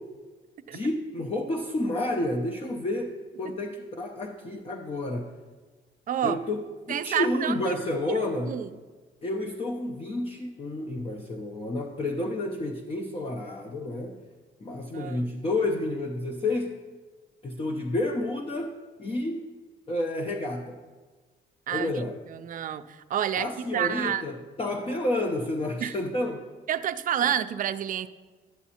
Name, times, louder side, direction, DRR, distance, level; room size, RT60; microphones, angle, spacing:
voice 1, 0.7-3.1 3.4-5.3 6.2-6.6 6.9-8.5 9.2-14.2 14.6-16.8 17.4-18.7 19.0-19.4 19.9-20.8 21.7-22.2 23.4-26.4, left 1 dB, 30° left, 2 dB, 0.6 m, -30 dB
voice 2, 6.1-6.4 6.9-7.8 8.1-8.7 14.9-15.2 21.7-21.9 22.3-24.2 25.8-26.0 26.7-28.1, right 9 dB, 45° right, 10 dB, 0.4 m, -29 dB
11.0 x 7.1 x 2.8 m, 1.4 s
cardioid pair, 90°, 20 cm